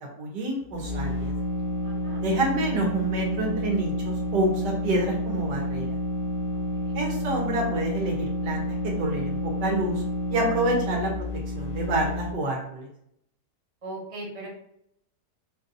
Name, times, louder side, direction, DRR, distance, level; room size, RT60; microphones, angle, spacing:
voice 1, 0.2-1.3 2.2-5.9 6.9-8.6 9.0-10.0 10.3-11.2 11.5-12.9, right 1 dB, 90° right, 0 dB, 1.7 m, -28 dB
sound 1, 0.6-12.3, left 1 dB, 65° left, 2.3 m, -30 dB
voice 2, 1.8-2.2 6.5-7.0 13.8-14.5, right 2 dB, 20° right, -4 dB, 1.2 m, -40 dB
5.1 x 2.7 x 2.6 m, 0.73 s
omnidirectional pair, 1.8 m